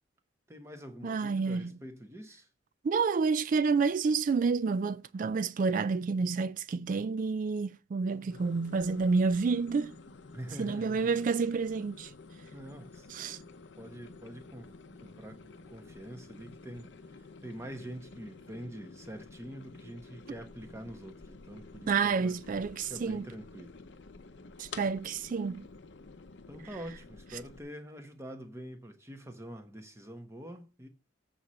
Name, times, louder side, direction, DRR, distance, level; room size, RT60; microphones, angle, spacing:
voice 1, 0.5-2.5 8.1-8.5 10.3-11.1 12.5-13.1 13.8-14.7 15.0-16.9 17.4-22.4 22.9-23.7 26.5-30.9, equal, 15° right, 1.1 m, -45 dB
voice 2, 1.0-1.7 2.8-9.9 10.6-12.1 13.1-13.4 21.9-23.3 24.6-25.6, right 4 dB, 45° right, 0.3 m, -29 dB
sound 1, 8.3-27.6, left 3 dB, 65° left, 0.7 m, -51 dB
7.8 x 4.3 x 6.3 m
head